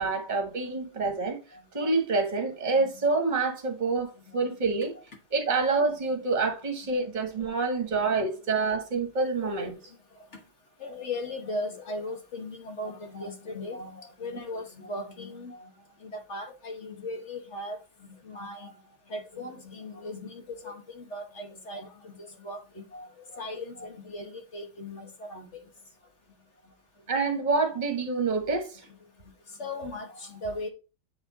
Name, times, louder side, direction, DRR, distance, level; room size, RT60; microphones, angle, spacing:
voice 1, 0.0-1.4 1.7-4.9 5.3-9.7 27.1-28.8, right 4 dB, 25° right, 1.4 m, -27 dB
voice 2, 9.3-9.7 10.8-15.7 16.0-17.8 18.2-18.7 19.1-22.1 22.4-25.5 29.6-30.7, left 2 dB, 45° left, 1.2 m, -38 dB
8.4 x 4.3 x 4.0 m
omnidirectional pair, 2.2 m